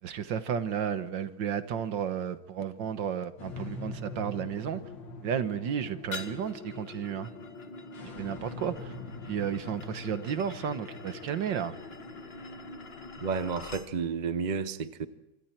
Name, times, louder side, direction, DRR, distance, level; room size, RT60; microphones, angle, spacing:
voice 1, 0.0-4.8 5.2-7.3 8.0-8.9 9.3-11.8, right 8 dB, 65° right, 11 dB, 1.7 m, -33 dB
sound 1, 3.4-13.4, left 3 dB, 65° left, 2.8 m, -43 dB
sound 2, 6.1-13.9, left 4 dB, 35° left, 1.4 m, -48 dB
voice 2, 13.2-15.1, right 5 dB, 40° right, 12 dB, 0.6 m, -31 dB
27.0 x 26.0 x 4.5 m, 0.99 s
omnidirectional pair, 2.2 m